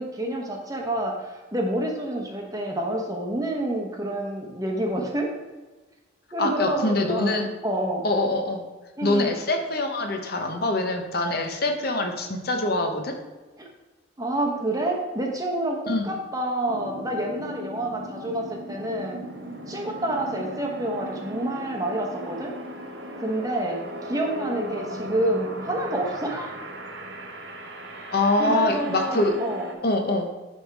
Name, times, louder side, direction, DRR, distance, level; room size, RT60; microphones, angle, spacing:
voice 1, 0.0-5.3 6.3-7.4 7.6-8.0 9.0-9.4 14.2-19.2 19.7-22.5 23.2-23.8 24.1-26.5 28.4-29.7, right 1 dB, 20° right, 1 dB, 1.0 m, -28 dB
voice 2, 6.4-7.5 8.0-8.6 9.0-13.1 15.9-16.1 28.1-29.3 29.8-30.3, left 2 dB, 50° left, 4 dB, 0.9 m, -24 dB
sound 1, 16.7-29.7, equal, 60° right, 1.1 m, -37 dB
10.5 x 3.6 x 4.6 m, 1.2 s
head